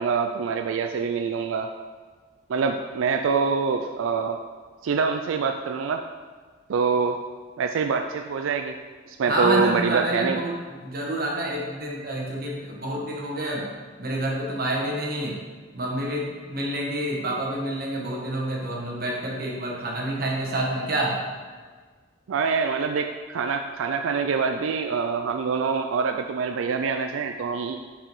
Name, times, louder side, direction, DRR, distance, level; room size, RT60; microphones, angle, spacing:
voice 1, 0.0-1.7 2.5-4.4 4.8-6.0 6.7-7.2 7.6-8.8 9.1-10.4 22.3-27.8, right 5 dB, 90° right, 5 dB, 0.4 m, -25 dB
voice 2, 9.3-10.5 10.8-13.7 14.0-15.4 15.7-21.2, right 1 dB, 50° right, -2 dB, 1.3 m, -28 dB
5.6 x 4.9 x 5.3 m, 1.5 s
head